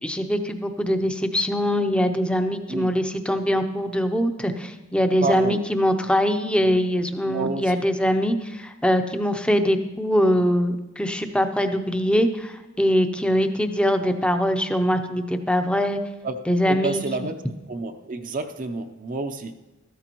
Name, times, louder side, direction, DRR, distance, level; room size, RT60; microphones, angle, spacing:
voice 1, 0.0-16.0 16.5-17.3, equal, 5° left, 7 dB, 0.6 m, -22 dB
voice 2, 5.2-5.6 7.3-7.7 16.2-16.4 16.7-17.4 17.7-19.5, right 3 dB, 40° right, 6 dB, 0.6 m, -29 dB
14.0 x 13.0 x 3.0 m, 1.1 s
head